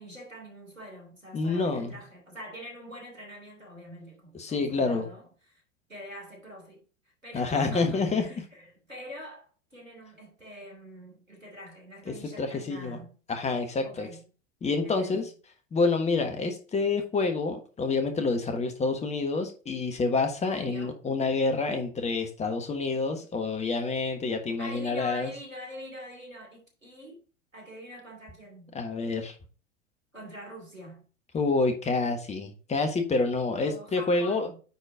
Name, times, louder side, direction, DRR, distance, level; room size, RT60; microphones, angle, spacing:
voice 1, 0.0-5.6 5.9-6.8 7.2-13.2 13.8-14.2 14.8-15.3 20.4-21.0 24.6-27.2 27.5-28.8 30.1-31.1 33.6-34.6, equal, 90° right, 3.1 m, -45 dB
voice 2, 1.3-2.0 4.4-5.1 7.3-8.3 12.1-13.0 13.3-14.1 14.6-15.3 15.7-25.3 28.7-29.3 31.3-34.5, left 3 dB, 15° left, 1.3 m, -28 dB
9.5 x 4.5 x 3.7 m
figure-of-eight pair, 90°, 38 cm